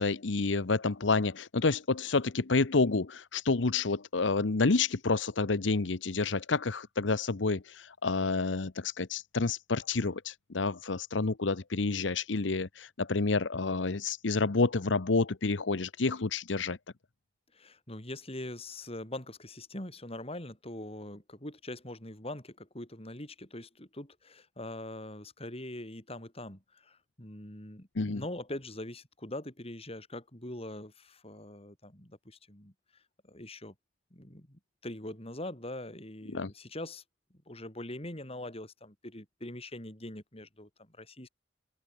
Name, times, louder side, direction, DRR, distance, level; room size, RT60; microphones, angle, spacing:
voice 1, 0.0-16.8 28.0-28.2 36.3-36.5, left 3 dB, 80° left, 0.9 m, -29 dB
voice 2, 17.5-32.7 33.2-33.7 34.1-37.0 37.5-41.3, left 1 dB, 30° left, 6.3 m, -43 dB
head